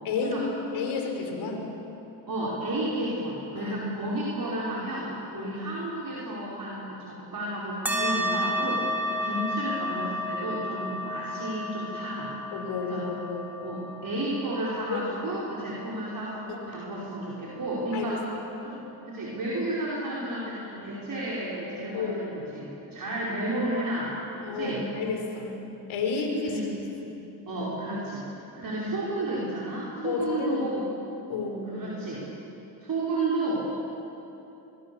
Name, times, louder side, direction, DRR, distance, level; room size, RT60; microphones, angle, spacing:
voice 1, 0.0-0.4 0.7-1.7 3.5-3.8 4.0-4.2 5.3-5.6 9.1-9.5 12.5-13.5 14.9-15.3 16.5-16.6 17.9-18.2 21.9-22.3 24.4-25.5 25.9-26.6 27.1-27.2 30.0-30.8 31.3-31.7, left 4 dB, 75° left, 2 dB, 4.8 m, -31 dB
voice 2, 2.3-8.9 9.2-12.3 12.8-13.1 13.6-18.2 18.6-24.8 26.4-26.7 27.4-28.3 28.5-30.8 31.6-32.2 32.8-33.6, right 1 dB, 45° right, -6 dB, 5.1 m, -32 dB
sound 1, 7.9-16.8, left 1 dB, 5° right, 4.2 m, -32 dB
23.0 x 23.0 x 7.1 m, 3.0 s
cardioid pair, 80°, 48 cm